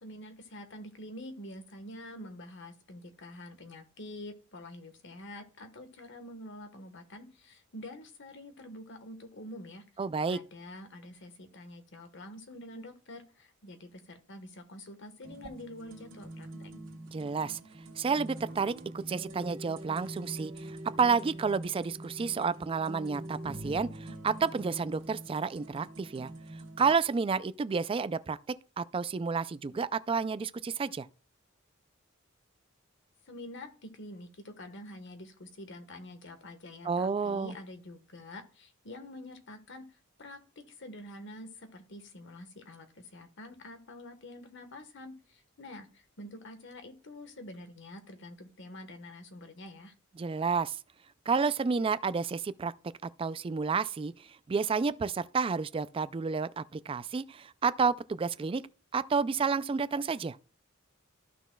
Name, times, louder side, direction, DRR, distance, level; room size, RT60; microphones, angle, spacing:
voice 1, 0.0-9.8 10.3-16.5 33.3-49.9, left 1 dB, 60° left, 1.3 m, -47 dB
voice 2, 10.0-10.4 17.1-17.6 18.0-26.3 26.8-28.4 28.8-31.1 36.8-37.5 50.2-50.8 51.3-52.7 53.0-58.6 58.9-60.4, right 5 dB, 25° right, 0.3 m, -30 dB
sound 1, 15.2-26.9, right 1 dB, 65° right, 2.2 m, -44 dB
14.0 x 6.1 x 2.3 m
head